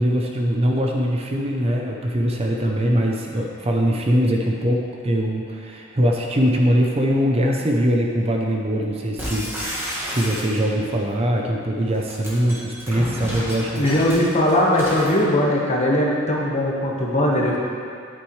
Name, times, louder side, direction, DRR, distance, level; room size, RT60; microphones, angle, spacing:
voice 1, 0.0-13.9, equal, 30° right, 0 dB, 0.6 m, -22 dB
sound 1, 9.2-10.9 11.9-15.2, equal, 10° right, 1.9 m, -31 dB
voice 2, 13.8-17.6, left 1 dB, 35° left, -3 dB, 1.3 m, -19 dB
9.9 x 8.8 x 3.2 m, 2.3 s
head